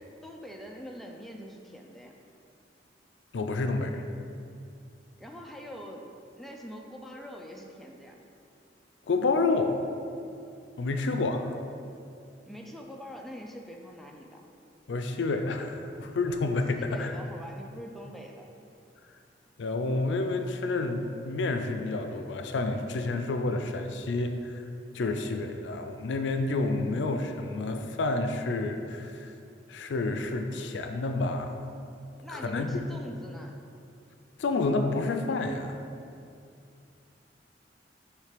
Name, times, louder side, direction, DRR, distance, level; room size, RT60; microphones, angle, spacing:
voice 1, 0.0-2.1 5.2-6.1 6.4-8.2 10.9-11.2 12.4-14.4 16.8-18.7 32.2-33.6, equal, ahead, 1 dB, 0.4 m, -44 dB
voice 2, 3.3-4.1 9.1-9.8 10.8-11.4 14.9-17.1 19.6-24.6 24.9-29.3 29.7-31.5 32.3-32.8 34.4-35.8, left 3 dB, 85° left, 7 dB, 0.4 m, -29 dB
6.5 x 3.2 x 5.1 m, 2.5 s
head